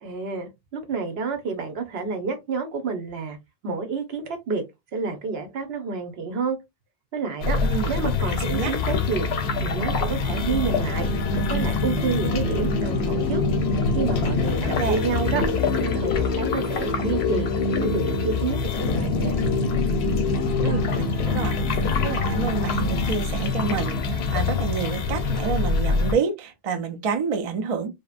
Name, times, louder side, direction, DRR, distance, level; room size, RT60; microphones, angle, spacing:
voice 1, 0.0-3.4 3.6-4.6 4.9-6.6 7.1-7.6 7.9-9.3 9.6-11.1 11.5-13.4 13.9-17.5 17.8-19.4, right 5 dB, 80° right, 1.0 m, -29 dB
sound 1, 7.4-26.1, left 3 dB, 90° left, 0.8 m, -24 dB
voice 2, 7.6-8.0 8.3-8.7 14.6-15.0 20.6-21.6 22.0-27.9, right 5 dB, 45° right, 0.5 m, -28 dB
2.7 x 2.0 x 2.4 m
omnidirectional pair, 1.0 m